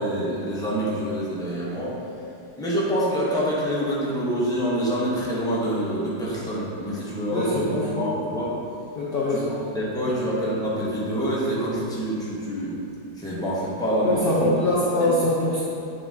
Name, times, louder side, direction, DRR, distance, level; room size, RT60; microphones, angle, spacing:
voice 1, 0.0-1.9 2.6-8.5 9.3-9.4 9.7-12.8 13.2-14.5 15.0-15.1, equal, 5° left, -8 dB, 0.9 m, -26 dB
voice 2, 7.3-8.1 9.0-9.5 14.0-15.6, left 1 dB, 65° left, -7 dB, 0.5 m, -23 dB
8.8 x 3.0 x 3.7 m, 2.5 s
omnidirectional pair, 1.9 m